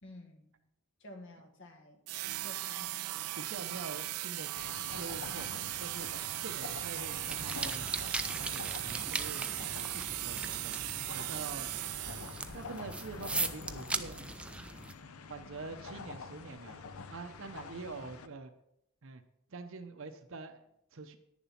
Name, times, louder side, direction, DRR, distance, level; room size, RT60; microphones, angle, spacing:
voice 1, 0.0-0.5 1.0-2.0 2.4-3.5, left 1 dB, 55° left, 4 dB, 1.6 m, -52 dB
sound 1, 2.1-12.6, right 17 dB, 85° right, 0.3 m, -38 dB
voice 2, 3.4-4.5 4.9-6.1 6.4-7.9 8.3-9.5 9.9-10.8 11.1-11.7 12.1-12.2 12.5-14.3 15.3-18.5 19.0-19.2 19.5-21.2, right 4 dB, 60° right, 7 dB, 0.7 m, -45 dB
sound 2, 4.5-18.3, left 4 dB, 80° left, 0.7 m, -47 dB
sound 3, 7.3-14.9, right 2 dB, 5° right, 0.4 m, -39 dB
10.0 x 7.1 x 5.7 m, 0.78 s
head